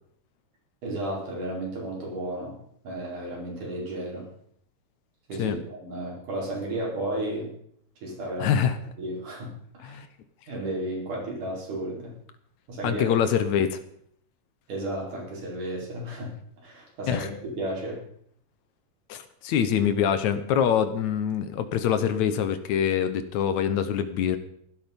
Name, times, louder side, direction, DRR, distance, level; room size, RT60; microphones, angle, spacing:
voice 1, 0.8-2.6 2.8-4.3 5.3-7.5 8.0-8.6 9.0-10.0 10.5-12.2 12.7-13.1 14.7-16.3 16.6-18.0, right 1 dB, 75° right, -2 dB, 6.0 m, -33 dB
voice 2, 8.4-8.8 9.8-10.1 12.8-13.8 17.1-17.3 19.1-24.4, left 8 dB, 70° left, 11 dB, 2.2 m, -25 dB
15.5 x 12.5 x 5.3 m, 0.66 s
omnidirectional pair, 3.6 m